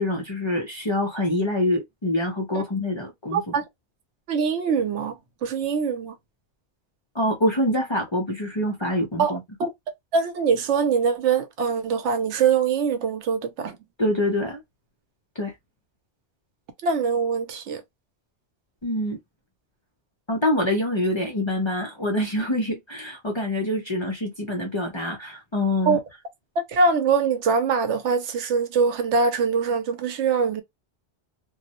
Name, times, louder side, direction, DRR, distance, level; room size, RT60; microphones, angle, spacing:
voice 1, 0.0-3.4 7.1-9.4 14.0-14.6 15.4-15.5 18.8-19.2 20.3-26.0, left 1 dB, 35° left, 0.5 m, -25 dB
voice 2, 3.3-3.6 4.3-6.1 9.2-9.7 10.1-13.8 16.8-17.8 25.9-26.0 26.6-30.6, right 5 dB, 80° right, 0.9 m, -23 dB
2.2 x 2.0 x 2.8 m
omnidirectional pair, 1.2 m